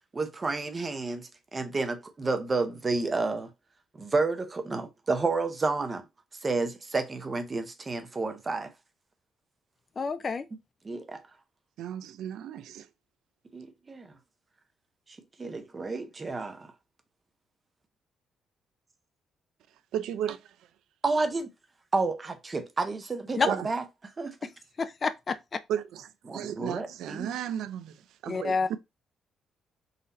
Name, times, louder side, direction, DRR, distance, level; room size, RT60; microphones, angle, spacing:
voice 1, 0.1-3.5 3.9-6.1 6.3-8.7 10.8-11.4 13.5-14.2 15.1-16.7 21.0-21.5 21.9-24.5 26.3-27.3, right 3 dB, 20° right, 0.6 m, -31 dB
voice 2, 10.0-10.4 23.4-23.5 24.8-25.4 28.3-28.7, left 4 dB, 30° left, 0.3 m, -28 dB
voice 3, 11.8-12.9 19.9-20.4 23.5-23.7 25.7-27.9 28.2-28.8, right 10 dB, 85° right, 0.4 m, -34 dB
4.0 x 2.6 x 4.1 m
cardioid pair, 160°, 0 cm